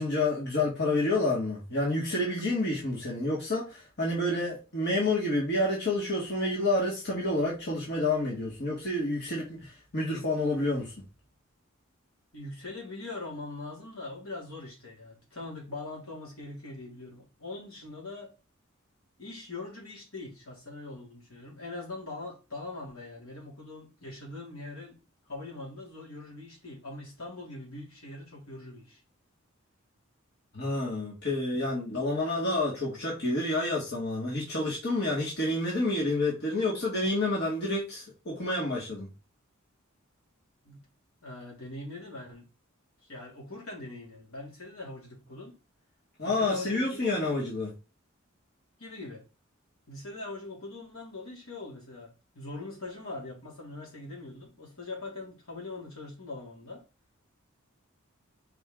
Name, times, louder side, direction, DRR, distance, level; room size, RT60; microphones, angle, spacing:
voice 1, 0.0-10.9 30.5-39.1 46.2-47.7, left 2 dB, 55° left, 2.1 m, -29 dB
voice 2, 12.3-18.3 19.2-24.9 25.3-29.0 40.6-40.8 41.2-42.4 43.1-45.5 46.2-47.4 48.8-49.2 49.9-56.8, left 2 dB, 85° left, 3.3 m, -42 dB
5.8 x 4.6 x 3.9 m
head